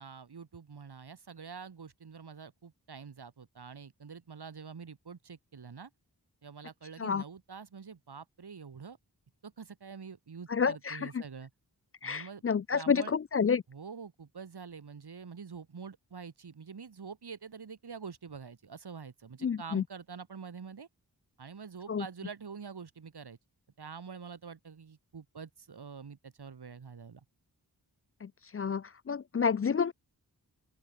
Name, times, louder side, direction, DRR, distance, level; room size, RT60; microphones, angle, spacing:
voice 1, 0.0-5.9 6.4-9.0 9.4-11.5 12.0-12.4 12.7-13.1 13.7-20.9 21.4-23.4 23.8-27.2, right 6 dB, 80° right, 3.6 m, -46 dB
voice 2, 10.5-11.2 12.0-13.6 19.4-19.8 21.9-22.1 28.2-29.9, left 6 dB, 35° left, 0.4 m, -30 dB
open air
wide cardioid pair, 65°, 38 cm